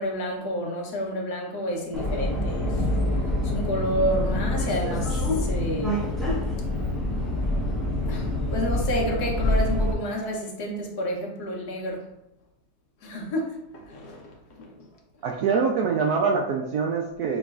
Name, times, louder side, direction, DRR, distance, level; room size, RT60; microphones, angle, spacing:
voice 1, 0.0-2.8 3.4-6.2 8.1-12.1 13.0-14.3 14.6-14.7, equal, 60° left, 1.3 m, -30 dB
Subway metro underground, 1.9-9.9, left 1 dB, ahead, 0.6 m, -26 dB
voice 2, 15.2-17.4, right 5 dB, 85° right, 0.8 m, -24 dB
6.0 x 3.1 x 2.4 m
omnidirectional pair, 2.2 m